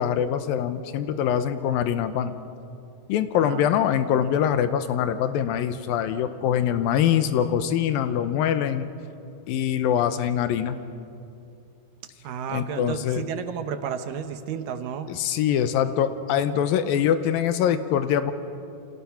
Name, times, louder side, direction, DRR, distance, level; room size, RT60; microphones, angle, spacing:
voice 1, 0.0-2.4 3.1-8.9 9.5-10.8 12.5-13.2 15.1-18.3, left 9 dB, 80° left, 11 dB, 2.6 m, -24 dB
voice 2, 12.2-15.1, right 7 dB, 70° right, 9 dB, 2.5 m, -32 dB
29.0 x 25.5 x 5.9 m, 2.6 s
omnidirectional pair, 4.3 m